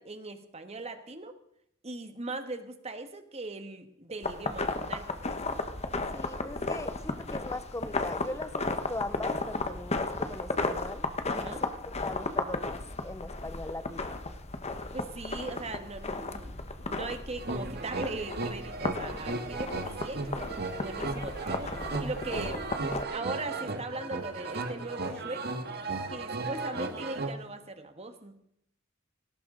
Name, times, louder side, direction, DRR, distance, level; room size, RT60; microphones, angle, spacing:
voice 1, 0.0-1.3 1.8-5.1 11.3-11.6 14.9-16.5 16.9-22.7 23.1-25.5 26.1-28.4, right 2 dB, 30° right, 7 dB, 1.6 m, -39 dB
sound 1, 4.2-23.0, left 3 dB, 30° left, 1.2 m, -35 dB
voice 2, 6.1-14.2, left 2 dB, 15° left, 13 dB, 0.6 m, -40 dB
sound 2, 17.4-27.3, right 3 dB, 50° right, 1.7 m, -35 dB
18.5 x 17.5 x 3.9 m, 0.73 s
head